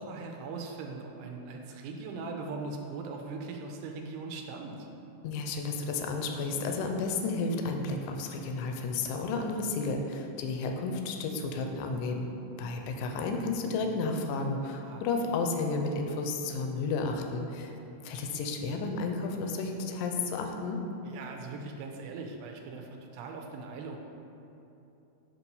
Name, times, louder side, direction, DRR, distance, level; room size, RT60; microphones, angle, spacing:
voice 1, 0.0-4.9 14.8-15.0 21.0-24.0, right 3 dB, 85° right, 2 dB, 2.4 m, -40 dB
voice 2, 5.2-17.7 18.0-20.8, left 3 dB, 80° left, 3 dB, 1.9 m, -32 dB
7.7 x 3.0 x 5.4 m, 2.9 s
omnidirectional pair, 4.1 m